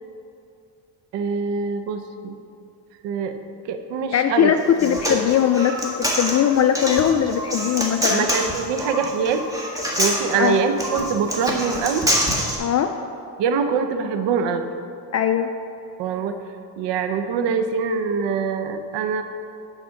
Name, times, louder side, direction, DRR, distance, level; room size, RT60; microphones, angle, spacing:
voice 1, 1.1-2.4 3.0-3.4 3.6-4.5 4.8-5.0 8.1-9.4 10.0-12.0 13.4-14.7 16.0-16.4 16.8-19.2, right 6 dB, 80° right, 7 dB, 0.8 m, -24 dB
voice 2, 4.1-8.2 10.3-10.6 12.6-12.9 15.1-15.5, left 9 dB, 40° left, 7 dB, 0.4 m, -20 dB
Human voice, 4.6-12.6, equal, 10° right, 1.6 m, -25 dB
9.7 x 4.2 x 6.4 m, 2.6 s
cardioid pair, 95°, 42 cm